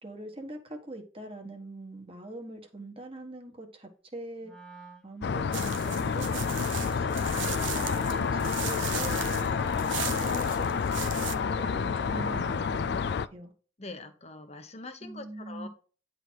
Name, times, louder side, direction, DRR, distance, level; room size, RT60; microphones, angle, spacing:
voice 1, 0.0-4.5 5.0-7.5 7.7-9.5 10.0-10.9 11.2-13.5 15.0-15.7, right 1 dB, 30° right, 1.4 m, -43 dB
Wind instrument woodwind instrument, 4.4-12.8, right 1 dB, 5° left, 1.1 m, -46 dB
sound 1, 5.2-13.3, left 6 dB, 60° left, 0.4 m, -29 dB
sound 2, 5.5-11.3, right 10 dB, 80° right, 0.8 m, -38 dB
voice 2, 13.8-15.7, left 3 dB, 35° left, 1.0 m, -43 dB
9.9 x 4.0 x 4.6 m
head